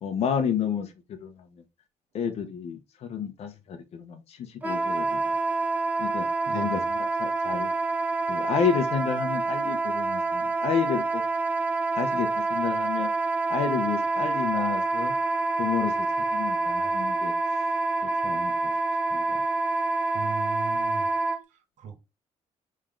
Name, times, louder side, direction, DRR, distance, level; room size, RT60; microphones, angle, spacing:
voice 1, 0.0-1.3 2.1-5.2 6.0-6.3 6.5-7.7 8.3-11.2 12.0-13.1 13.5-15.1 15.6-16.1 16.3-17.3 18.2-18.7 19.1-19.4, left 7 dB, 55° left, 0.8 m, -30 dB
Wind instrument woodwind instrument, 4.6-21.4, right 3 dB, 10° right, 0.7 m, -27 dB
voice 2, 6.5-6.8 20.1-21.1 21.5-22.0, right 6 dB, 80° right, 1.0 m, -38 dB
3.6 x 3.2 x 3.6 m
cardioid pair, 135°, 12 cm